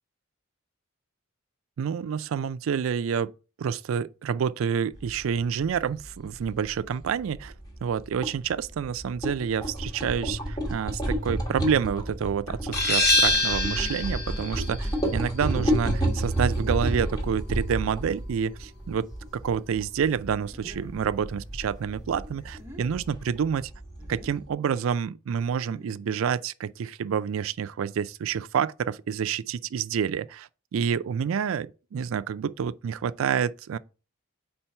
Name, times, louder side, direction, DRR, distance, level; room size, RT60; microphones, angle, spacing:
voice 1, 1.8-3.3 3.6-7.5 7.8-19.1 19.3-23.7 24.1-33.8, right 7 dB, 70° right, 0.3 m, -28 dB
sound 1, 4.9-24.5, right 1 dB, 20° left, 1.3 m, -31 dB
sound 2, 12.7-18.1, left 1 dB, 50° left, 0.9 m, -27 dB
sound 3, 15.5-15.8 16.4-16.5 16.9-17.5 18.1-18.2 20.5-21.1 22.4-22.9 24.0-24.4 25.4-26.2, equal, 10° right, 1.0 m, -49 dB
4.4 x 4.3 x 5.4 m
head